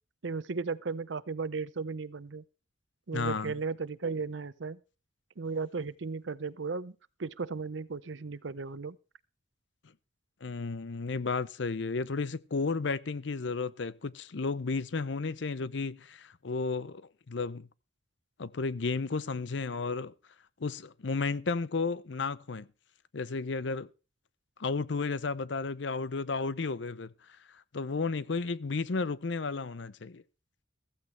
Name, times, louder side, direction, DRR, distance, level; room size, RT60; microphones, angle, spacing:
voice 1, 0.2-2.4 3.1-4.8 5.4-6.9 7.2-9.0, right 4 dB, 70° right, 0.7 m, -35 dB
voice 2, 3.1-3.6 10.4-17.7 18.4-20.1 20.6-22.7 23.1-23.9 24.6-30.2, left 4 dB, 65° left, 0.6 m, -33 dB
15.0 x 14.5 x 3.3 m
head